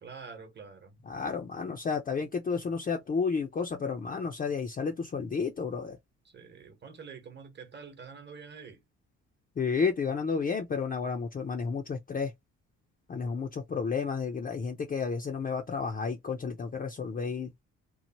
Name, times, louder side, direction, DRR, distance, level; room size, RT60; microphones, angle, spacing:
voice 1, 0.0-1.0 6.2-8.8, right 5 dB, 35° right, 1.1 m, -47 dB
voice 2, 1.1-6.0 9.6-12.3 13.1-17.5, left 5 dB, 30° left, 0.5 m, -31 dB
3.0 x 2.0 x 2.8 m
cardioid pair, 90°, 30 cm